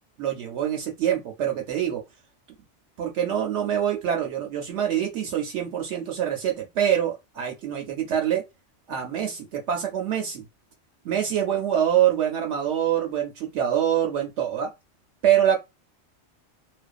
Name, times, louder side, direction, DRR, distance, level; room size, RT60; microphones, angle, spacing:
voice 1, 0.2-2.0 3.0-8.4 8.9-10.4 11.0-14.7 15.2-15.6, right 10 dB, 75° right, 0.9 m, -25 dB
2.5 x 2.2 x 2.3 m
omnidirectional pair, 1.2 m